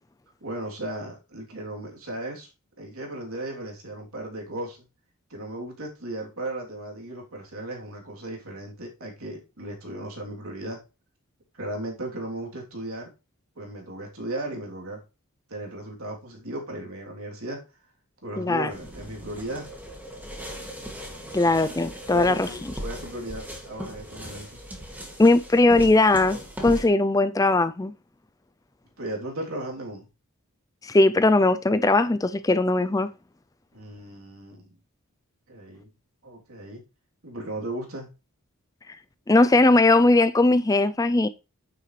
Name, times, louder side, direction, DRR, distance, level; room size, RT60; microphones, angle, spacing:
voice 1, 0.4-2.5 2.8-4.8 5.3-10.8 11.5-13.1 13.5-15.0 15.5-17.6 18.2-19.7 22.1-24.6 29.0-30.1 33.7-34.8 35.5-35.9 36.2-36.8 37.2-38.1, right 1 dB, 75° right, 3.2 m, -36 dB
voice 2, 18.4-18.7 21.3-22.5 25.2-26.4 26.6-27.9 30.8-33.1 39.3-41.3, left 2 dB, 15° left, 0.4 m, -19 dB
sound 1, 18.7-26.9, equal, 10° right, 2.3 m, -38 dB
9.6 x 9.4 x 3.3 m
head